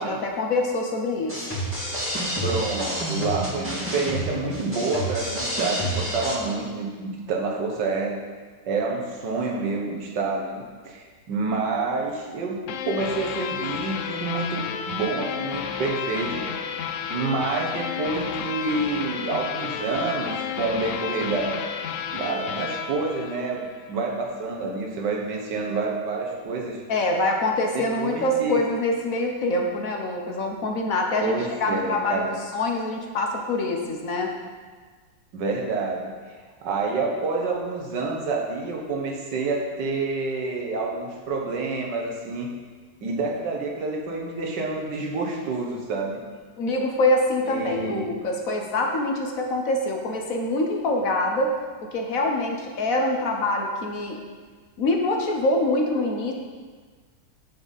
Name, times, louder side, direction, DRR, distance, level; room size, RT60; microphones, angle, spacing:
voice 1, 0.0-1.6 26.9-34.3 46.6-51.5 51.9-54.2 54.8-56.3, left 2 dB, 55° left, 2 dB, 1.2 m, -25 dB
sound 1, 1.3-6.4, equal, 5° right, 1.9 m, -29 dB
voice 2, 2.4-8.2 8.6-12.6 12.9-16.5 17.1-21.6 22.1-26.8 27.7-28.6 31.2-32.4 35.3-36.1 36.6-42.5 43.0-46.2 47.4-48.1, right 3 dB, 75° right, 0 dB, 1.8 m, -28 dB
sound 2, 12.7-23.9, left 7 dB, 75° left, 0.7 m, -32 dB
9.3 x 6.7 x 4.1 m, 1.5 s
omnidirectional pair, 1.9 m